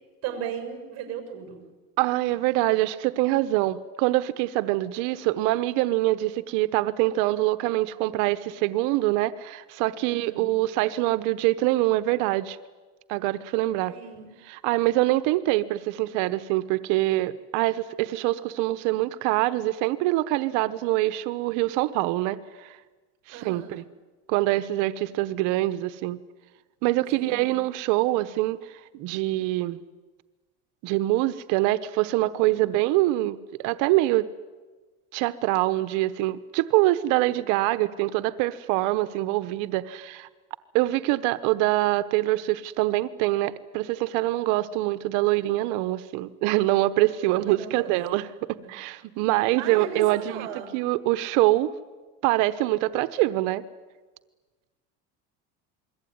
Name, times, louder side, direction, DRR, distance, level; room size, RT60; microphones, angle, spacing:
voice 1, 0.2-1.6 10.0-10.5 13.9-14.3 23.3-23.8 27.1-27.6 32.5-32.6 47.3-48.0 48.5-48.7 49.6-50.7, right 8 dB, 55° right, 6 dB, 6.3 m, -37 dB
voice 2, 2.0-12.6 13.1-13.9 14.4-22.8 23.3-23.8 24.3-26.2 26.8-29.8 30.8-34.3 35.1-40.3 40.7-51.7 52.2-53.6, right 17 dB, 75° right, 13 dB, 1.1 m, -24 dB
28.0 x 22.0 x 9.5 m, 1.3 s
cardioid pair, 135°, 31 cm